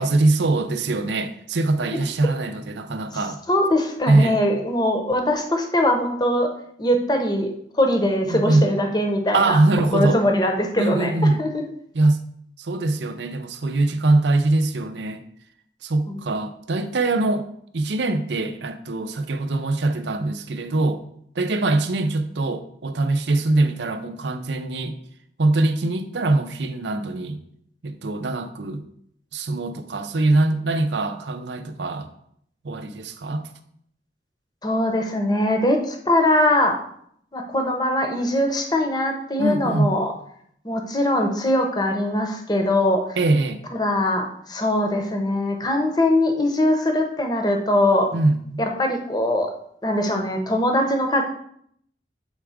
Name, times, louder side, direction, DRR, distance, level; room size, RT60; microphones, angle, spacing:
voice 1, 0.0-3.4 4.1-4.4 8.3-8.7 9.3-10.2 10.8-11.4 11.9-12.3 12.6-15.2 15.8-17.5 17.7-21.0 21.4-25.0 25.4-27.4 27.8-28.8 29.3-32.1 32.6-33.5 39.4-40.0 43.2-43.6 48.1-48.6, right 2 dB, 70° right, 0.6 m, -22 dB
voice 2, 3.5-6.5 6.8-7.5 7.8-9.6 9.9-11.1 11.4-11.6 16.1-16.2 34.6-36.8 37.3-40.1 40.6-43.2 43.7-48.1 48.6-49.5 49.8-51.2, left 1 dB, 20° left, 0.8 m, -21 dB
8.0 x 3.4 x 4.9 m
head